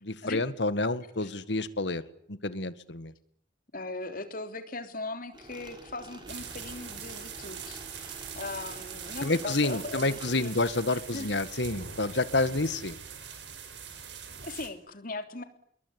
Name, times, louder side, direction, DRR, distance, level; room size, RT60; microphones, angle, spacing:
voice 1, 0.0-2.0 2.3-3.1 9.2-13.0, left 2 dB, 70° left, 14 dB, 1.8 m, -29 dB
voice 2, 3.7-10.6 10.9-11.3 14.4-15.4, left 2 dB, 50° left, 8 dB, 3.3 m, -39 dB
sound 1, 5.3-10.4, right 2 dB, 25° right, 5.0 m, -49 dB
sound 2, 6.3-14.7, right 7 dB, 75° right, 4.7 m, -42 dB
27.5 x 22.0 x 9.7 m, 0.67 s
head